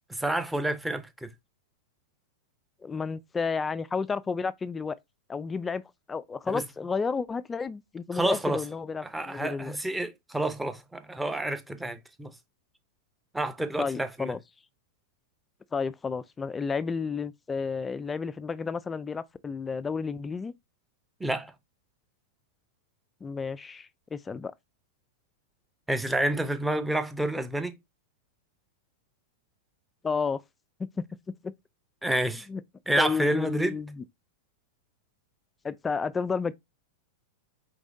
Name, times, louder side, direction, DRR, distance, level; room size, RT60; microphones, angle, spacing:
voice 1, 0.1-1.3 6.5-6.6 8.1-8.6 9.0-12.3 13.3-14.3 21.2-21.5 25.9-27.8 32.0-32.5 32.9-33.8, right 1 dB, 5° right, 0.7 m, -29 dB
voice 2, 2.8-5.0 5.3-5.8 6.1-9.8 13.8-14.4 15.7-20.5 23.2-24.5 30.0-30.4 30.8-31.0 31.4-31.5 32.5-32.6 32.9-34.0 35.6-36.5, left 5 dB, 15° left, 0.3 m, -31 dB
4.7 x 3.8 x 2.6 m
hypercardioid pair, 100°, 0 cm